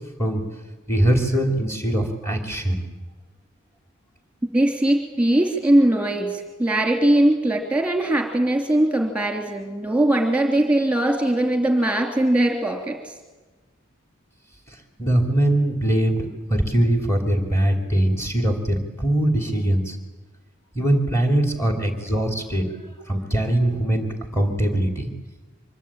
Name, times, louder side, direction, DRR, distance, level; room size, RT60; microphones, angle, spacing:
voice 1, 0.9-2.8 15.0-20.0 20.7-22.7 23.1-25.1, right 1 dB, 15° left, 4 dB, 3.1 m, -22 dB
voice 2, 4.5-13.1 22.8-22.9, right 1 dB, 5° right, 3 dB, 2.9 m, -20 dB
25.0 x 23.0 x 8.9 m, 1.2 s
head